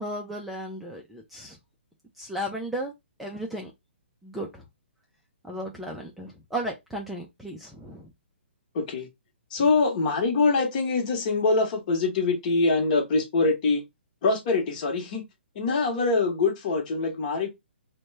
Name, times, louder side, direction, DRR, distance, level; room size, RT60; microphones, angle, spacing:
voice 1, 0.0-1.6 2.2-2.9 3.2-3.7 4.2-4.6 5.4-8.1, right 1 dB, ahead, 0.4 m, -35 dB
voice 2, 8.7-9.1 9.5-13.8 14.2-15.2 15.5-17.5, left 3 dB, 40° left, 1.0 m, -24 dB
2.9 x 2.2 x 3.2 m
hypercardioid pair, 145°, 6 cm